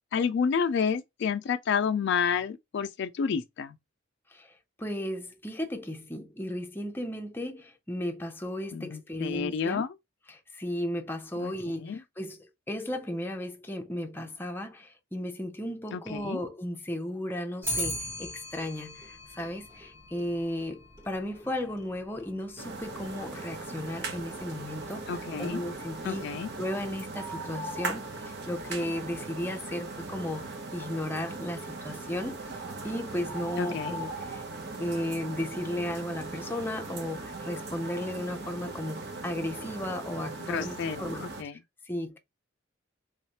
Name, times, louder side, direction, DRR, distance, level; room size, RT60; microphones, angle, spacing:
voice 1, 0.1-3.8 8.7-9.9 11.4-11.5 11.8-12.0 15.9-16.4 25.1-25.6 26.0-26.5 33.6-34.0 40.5-41.5, left 6 dB, 60° left, 0.3 m, -30 dB
voice 2, 4.8-9.8 10.3-26.3 26.6-32.4 32.8-34.4 34.8-41.5 41.9-42.2, left 1 dB, 10° left, 0.6 m, -35 dB
Clock, 17.6-27.0, equal, 15° right, 1.1 m, -41 dB
sound 1, 22.6-41.4, right 3 dB, 55° right, 0.8 m, -39 dB
3.5 x 3.1 x 2.8 m
head